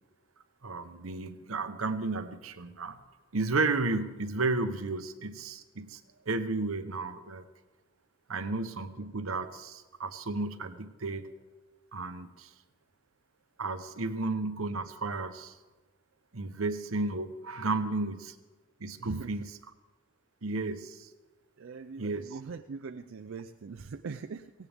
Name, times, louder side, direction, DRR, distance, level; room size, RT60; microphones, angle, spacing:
voice 1, 0.6-3.0 3.3-6.0 6.3-7.4 8.3-11.3 11.9-12.5 13.6-15.5 16.3-18.3 18.8-19.5 20.4-21.1 22.0-22.4, right 3 dB, 85° right, 10 dB, 1.0 m, -33 dB
voice 2, 19.0-19.4 21.6-24.5, right 5 dB, 65° right, 7 dB, 0.4 m, -41 dB
17.5 x 17.0 x 3.5 m, 1.2 s
head